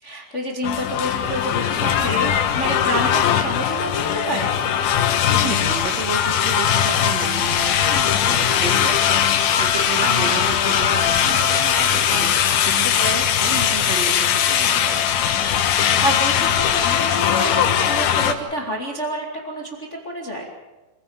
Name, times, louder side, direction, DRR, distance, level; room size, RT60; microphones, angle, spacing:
voice 1, 0.0-4.5 10.0-10.3 13.0-13.2 15.7-20.5, equal, 20° left, 0 dB, 2.3 m, -28 dB
sound 1, 0.6-18.3, left 9 dB, 80° left, 3.2 m, -20 dB
voice 2, 5.3-9.2 9.6-15.1, right 5 dB, 50° right, 5 dB, 2.9 m, -32 dB
27.5 x 15.5 x 7.4 m, 1.1 s
omnidirectional pair, 4.3 m